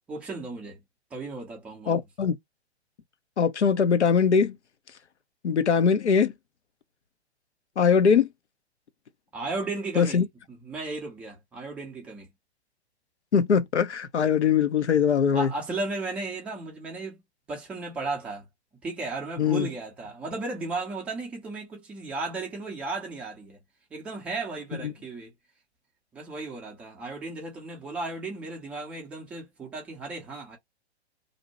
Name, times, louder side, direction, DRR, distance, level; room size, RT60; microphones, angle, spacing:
voice 1, 0.1-0.8 1.1-2.0 9.3-10.2 10.5-12.3 15.3-17.2 17.5-18.4 18.8-23.6 23.9-25.3 26.1-30.6, right 3 dB, 5° right, 0.3 m, -35 dB
voice 2, 1.9-2.4 3.4-4.6 5.4-6.3 7.8-8.3 10.0-10.2 13.3-15.5 19.4-19.7 24.8-24.9, left 6 dB, 90° left, 0.5 m, -21 dB
2.6 x 2.0 x 2.8 m
figure-of-eight pair, 115°, 33 cm